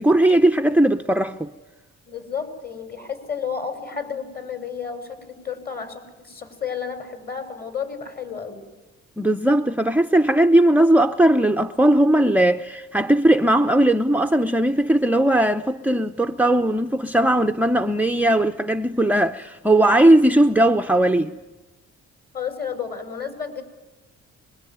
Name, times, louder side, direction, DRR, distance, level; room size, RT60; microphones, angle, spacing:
voice 1, 0.0-1.5 9.2-21.4, right 1 dB, 5° right, 0.8 m, -18 dB
voice 2, 2.1-8.7 22.3-23.6, left 6 dB, 30° left, 6.3 m, -32 dB
25.0 x 23.0 x 9.5 m
cardioid pair, 90°, 30 cm